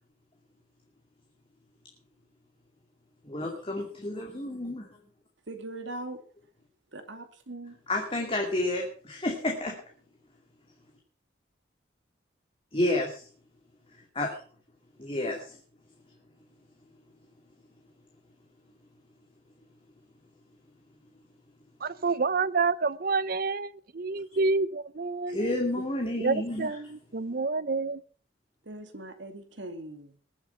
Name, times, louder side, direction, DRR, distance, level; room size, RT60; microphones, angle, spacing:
voice 1, 3.2-4.9 7.9-9.8 12.7-13.2 14.1-14.4 15.0-15.6 25.3-26.7, left 1 dB, 30° left, 2.4 m, -30 dB
voice 2, 5.5-6.2 6.9-7.8 28.6-30.1, right 2 dB, 80° right, 2.3 m, -40 dB
voice 3, 21.8-25.6 26.2-28.0, right 4 dB, 50° right, 0.7 m, -28 dB
21.0 x 7.5 x 5.7 m
head